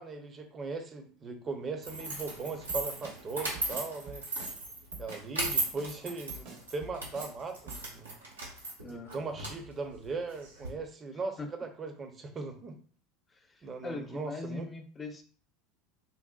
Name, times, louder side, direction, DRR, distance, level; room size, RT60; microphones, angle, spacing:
voice 1, 0.0-4.2 5.0-8.1 8.9-12.8 13.6-14.7, right 4 dB, 30° right, 5 dB, 0.6 m, -39 dB
sound 1, 1.8-10.7, right 2 dB, 90° right, 0.8 m, -37 dB
Drum kit, 2.7-3.2 3.5-4.6 4.9-6.0 6.3-7.3 7.7-7.8, right 3 dB, 60° right, 0.9 m, -47 dB
voice 2, 8.8-9.1 11.4-11.5 13.3-15.2, left 3 dB, 25° left, 5 dB, 0.5 m, -41 dB
3.9 x 2.1 x 2.4 m, 0.43 s
hypercardioid pair, 75°, 0 cm